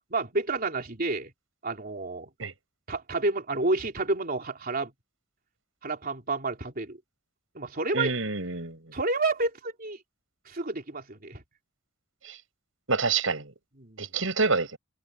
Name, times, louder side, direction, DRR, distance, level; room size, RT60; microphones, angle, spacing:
voice 1, 0.1-1.3 1.6-2.3 2.9-4.9 5.8-7.0 7.6-8.1 8.9-10.0 10.5-11.4 13.8-14.2, right 3 dB, 50° right, 3.4 m, -30 dB
voice 2, 7.9-8.9 12.2-12.4 12.9-13.5 14.0-14.8, right 4 dB, 85° right, 6.1 m, -27 dB
head